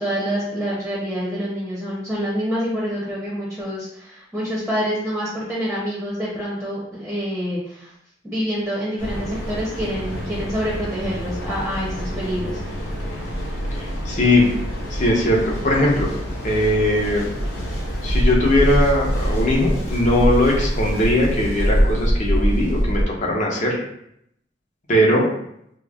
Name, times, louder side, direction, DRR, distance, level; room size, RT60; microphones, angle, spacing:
voice 1, 0.0-7.9 8.2-12.6, equal, ahead, -6 dB, 0.7 m, -27 dB
Mechanical fan, 9.0-23.0, equal, 85° left, 0.7 m, -24 dB
voice 2, 13.7-14.5 14.9-16.1 16.4-17.3 18.0-23.8 24.9-25.3, left 1 dB, 40° left, -2 dB, 0.8 m, -19 dB
5.1 x 2.0 x 2.4 m, 0.73 s
head